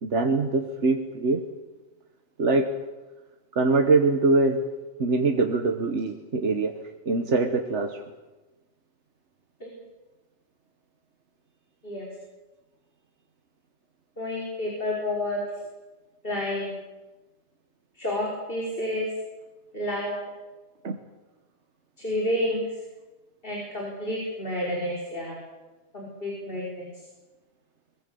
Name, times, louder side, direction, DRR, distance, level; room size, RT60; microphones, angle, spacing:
voice 1, 0.0-1.4 2.4-2.8 3.5-6.8 7.0-8.0 20.8-21.0, right 3 dB, 90° right, 4 dB, 1.6 m, -23 dB
voice 2, 14.2-15.4 16.2-16.8 17.9-19.1 19.7-20.2 22.0-22.6 23.4-25.4 25.9-26.9, left 1 dB, 50° left, -3 dB, 5.2 m, -30 dB
23.0 x 22.0 x 7.0 m, 1.1 s
omnidirectional pair, 1.2 m